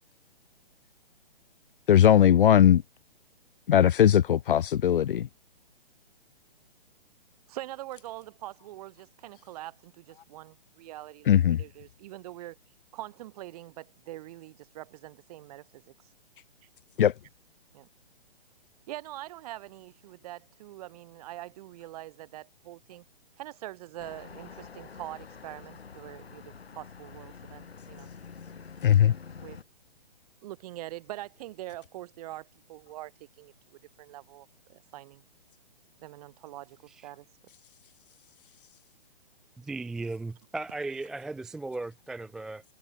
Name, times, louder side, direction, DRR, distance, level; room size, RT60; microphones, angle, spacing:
voice 1, 1.9-2.8 3.7-5.3 11.3-11.6 17.0-17.1 28.8-29.1, left 10 dB, 60° left, 0.8 m, -19 dB
voice 2, 7.5-12.6 12.9-15.9 17.7-17.9 18.9-23.0 23.4-28.1 29.1-29.6 30.4-35.2 36.0-37.3, right 16 dB, 40° right, 7.7 m, -44 dB
sound 1, 24.0-29.6, left 6 dB, 85° left, 5.0 m, -47 dB
voice 3, 39.6-42.6, right 2 dB, ahead, 0.4 m, -36 dB
hypercardioid pair, 150°, 30 cm